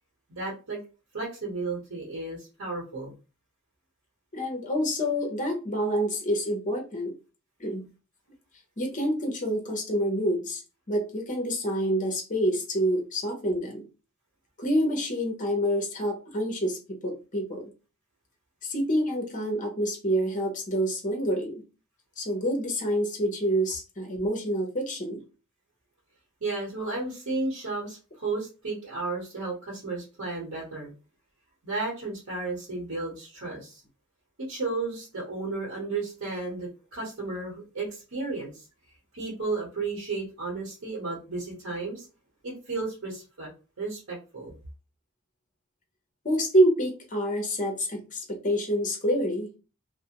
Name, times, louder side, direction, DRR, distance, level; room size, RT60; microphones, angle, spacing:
voice 1, 0.3-0.8 1.1-3.1 26.4-30.9 31.6-33.8 34.5-38.7 39.1-42.1 42.4-43.5 43.8-44.6, right 3 dB, 70° right, -5 dB, 1.0 m, -33 dB
voice 2, 4.3-7.1 7.6-7.8 8.8-10.6 10.9-13.9 14.6-17.7 18.6-21.6 22.2-25.2 46.2-49.5, equal, 35° left, 3 dB, 0.8 m, -27 dB
2.4 x 2.1 x 2.8 m, 0.32 s
head